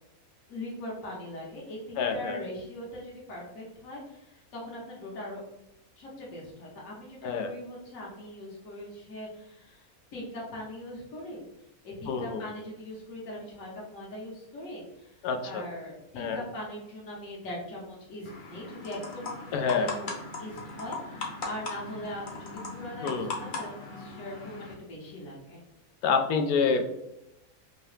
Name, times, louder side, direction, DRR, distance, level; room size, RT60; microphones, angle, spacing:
voice 1, 0.5-5.4 6.0-11.4 11.8-19.4 19.7-20.1 20.4-25.6, left 1 dB, 65° left, -4 dB, 1.3 m, -41 dB
voice 2, 2.0-2.4 7.2-7.5 12.1-12.5 15.2-15.6 16.2-16.4 19.5-19.9 23.0-23.3 26.0-26.8, left 5 dB, 90° left, 5 dB, 1.1 m, -27 dB
sound 1, 18.3-24.7, left 3 dB, 45° left, 0.7 m, -39 dB
3.8 x 2.8 x 3.2 m, 0.88 s
omnidirectional pair, 1.5 m